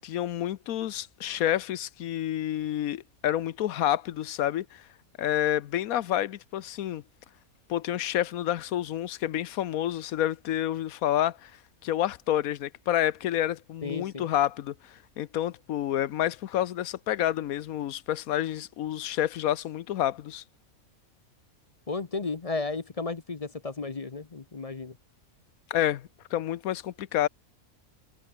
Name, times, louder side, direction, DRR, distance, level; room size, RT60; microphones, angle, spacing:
voice 1, 0.0-4.8 5.2-7.0 7.7-11.5 11.8-14.7 15.2-20.4 25.7-27.3, left 12 dB, 90° left, 1.2 m, -29 dB
voice 2, 13.8-14.3 21.9-24.9, left 3 dB, 30° left, 0.8 m, -33 dB
omnidirectional pair, 1.4 m